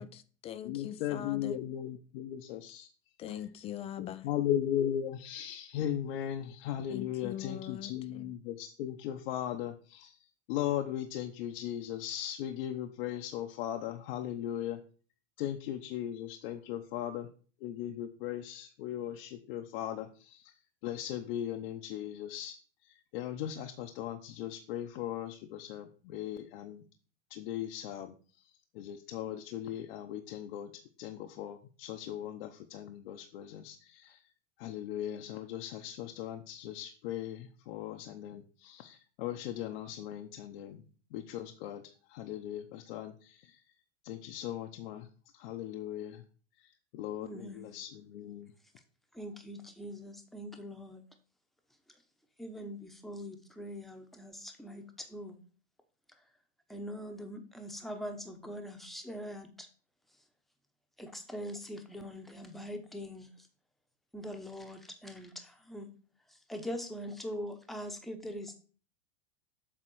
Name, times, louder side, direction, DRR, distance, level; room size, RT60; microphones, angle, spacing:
voice 1, 0.0-1.6 3.2-4.3 6.9-8.3, left 11 dB, 20° left, 0.3 m, -42 dB
voice 2, 0.6-2.9 4.0-10.2 10.5-14.8 15.4-17.3 17.6-20.5 20.8-22.6 22.8-26.8 27.3-28.1 28.7-30.7 31.0-34.2 34.6-40.8 41.1-41.8 42.1-43.6 44.0-45.1 45.3-46.2 46.6-48.5, left 11 dB, 55° left, 0.8 m, -38 dB
voice 3, 47.2-47.7 49.1-51.0 52.4-55.4 56.7-59.7 61.0-63.3 64.1-65.9 66.5-68.6, equal, ahead, 0.9 m, -42 dB
7.8 x 3.7 x 6.1 m
hypercardioid pair, 130°, 34 cm